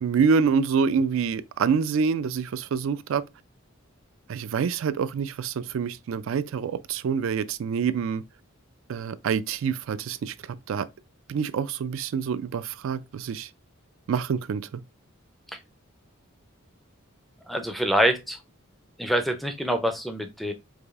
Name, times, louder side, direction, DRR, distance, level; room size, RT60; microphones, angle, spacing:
voice 1, 0.0-3.2 4.3-8.2 8.9-10.9 11.3-13.5 14.1-14.8, right 6 dB, 70° right, 0.3 m, -26 dB
voice 2, 17.5-18.4 19.0-20.5, equal, ahead, 0.4 m, -25 dB
4.8 x 2.6 x 2.4 m
head